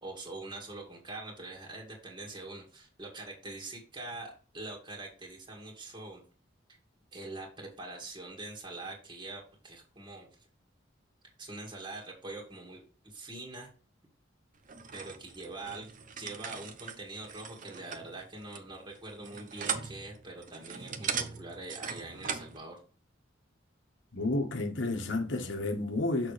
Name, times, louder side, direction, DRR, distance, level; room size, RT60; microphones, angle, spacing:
voice 1, 0.0-6.2 7.1-10.3 11.4-13.7 14.9-22.8, right 2 dB, 25° right, 2.0 m, -44 dB
sound 1, 14.7-22.6, right 6 dB, 45° right, 0.8 m, -39 dB
voice 2, 24.1-26.3, left 2 dB, 70° left, 1.4 m, -31 dB
6.6 x 6.5 x 3.4 m
head